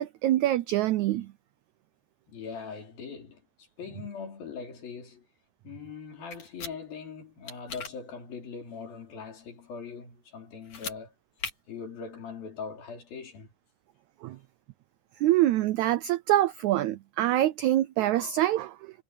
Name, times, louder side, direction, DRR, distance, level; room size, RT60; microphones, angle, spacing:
voice 1, 0.0-1.3 14.2-14.4 15.2-19.0, right 14 dB, 90° right, 1.6 m, -25 dB
voice 2, 2.3-3.4 3.8-5.3 5.6-11.1 11.7-13.5 14.3-14.4, left 5 dB, 90° left, 6.1 m, -41 dB
sound 1, 6.3-6.7 7.5-7.9 10.6-11.0 11.4-11.5, left 5 dB, 60° left, 5.0 m, -37 dB
omnidirectional pair, 4.0 m